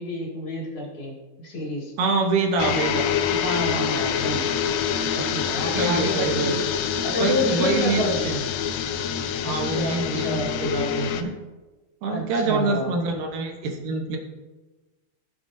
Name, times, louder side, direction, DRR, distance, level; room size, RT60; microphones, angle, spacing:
voice 1, 0.0-1.9 3.4-6.5 7.0-8.4 9.4-10.5 12.1-12.9, left 1 dB, 45° left, -4 dB, 2.9 m, -29 dB
voice 2, 2.0-3.1 5.8-6.6 7.2-8.4 9.4-11.3 12.0-14.2, right 3 dB, 85° right, 2 dB, 2.7 m, -25 dB
sound 1, 2.6-11.2, left 8 dB, 80° left, 1.6 m, -26 dB
17.0 x 6.9 x 2.7 m, 1.2 s
omnidirectional pair, 3.7 m